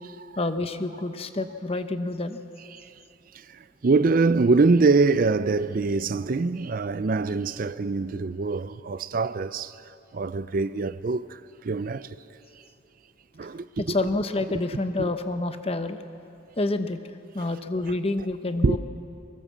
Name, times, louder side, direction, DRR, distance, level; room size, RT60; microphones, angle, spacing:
voice 1, 0.4-2.4 13.8-16.0 16.6-17.0 17.3-18.8, left 2 dB, 30° left, 0.9 m, -28 dB
voice 2, 3.3-9.8 10.1-12.2 13.4-14.0 14.5-14.6 15.0-15.1 18.6-18.8, right 3 dB, 45° right, 0.4 m, -24 dB
23.5 x 19.5 x 7.3 m
head